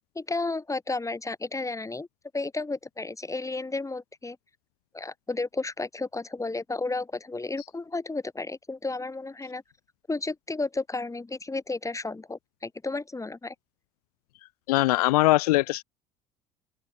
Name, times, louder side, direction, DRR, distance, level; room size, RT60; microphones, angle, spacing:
voice 1, 0.1-2.1 2.3-4.4 4.9-9.6 10.1-13.5, left 3 dB, 15° left, 7.7 m, -32 dB
voice 2, 14.7-15.8, left 19 dB, 65° left, 2.9 m, -21 dB
open air
figure-of-eight pair, 60°, 21 cm